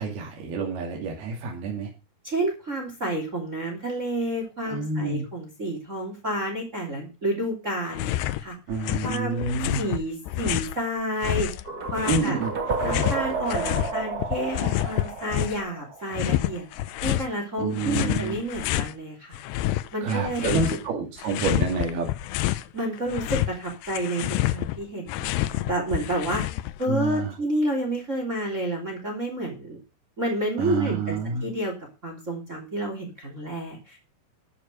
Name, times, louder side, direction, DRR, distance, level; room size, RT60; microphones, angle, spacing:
voice 1, 0.0-1.9 4.7-5.3 8.7-9.8 12.1-12.5 17.6-18.4 20.0-22.1 26.9-27.3 30.6-31.5, right 4 dB, 70° right, 0 dB, 4.6 m, -28 dB
voice 2, 2.2-8.6 9.0-11.5 11.9-12.4 12.8-16.7 17.0-19.4 19.9-20.6 22.7-26.4 26.8-29.8 30.2-31.7 32.0-34.0, right 1 dB, 20° right, 1 dB, 3.2 m, -30 dB
sound 1, 7.9-8.4 8.7-10.8 11.2-13.9 14.2-15.7 16.1-17.3 17.8-18.9 19.3-20.9 21.2-22.7 23.0-26.9, left 15 dB, 90° left, 2.8 m, -28 dB
sound 2, 11.6-16.6, right 4 dB, 35° right, 1.5 m, -31 dB
13.5 x 6.9 x 6.5 m, 0.31 s
omnidirectional pair, 4.7 m